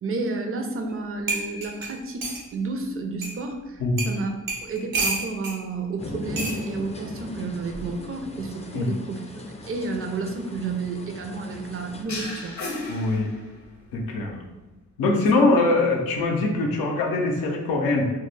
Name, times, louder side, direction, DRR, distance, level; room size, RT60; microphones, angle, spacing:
voice 1, 0.0-12.6 15.2-15.3, right 3 dB, 40° right, 4 dB, 0.5 m, -31 dB
sound 1, 0.9-1.0 1.3-2.4 3.2-3.3 4.0-4.1 4.5-5.6 6.4-6.6 7.7-8.0, right 3 dB, 75° right, 0.7 m, -29 dB
sound 2, 6.0-12.0, left 2 dB, 20° left, 0.4 m, -39 dB
sound 3, 12.1-13.9, left 2 dB, 55° left, 0.7 m, -34 dB
voice 2, 12.9-13.3 13.9-14.3 15.0-18.1, left 2 dB, 85° left, 1 dB, 0.5 m, -22 dB
2.2 x 2.0 x 3.2 m, 1.1 s
supercardioid pair, 50°, 35 cm